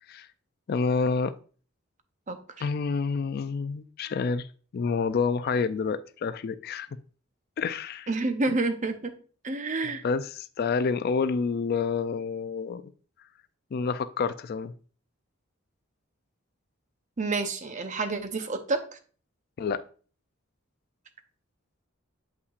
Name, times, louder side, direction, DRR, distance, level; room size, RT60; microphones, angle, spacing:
voice 1, 0.7-1.3 2.6-4.5 4.7-6.9 7.6-8.1 10.0-12.8 13.7-14.7 19.6-19.8, left 5 dB, 50° left, 0.3 m, -28 dB
voice 2, 2.3-2.7 8.1-9.1 9.4-10.0 17.2-19.0, right 3 dB, 35° right, 0.7 m, -29 dB
8.0 x 5.6 x 2.4 m
head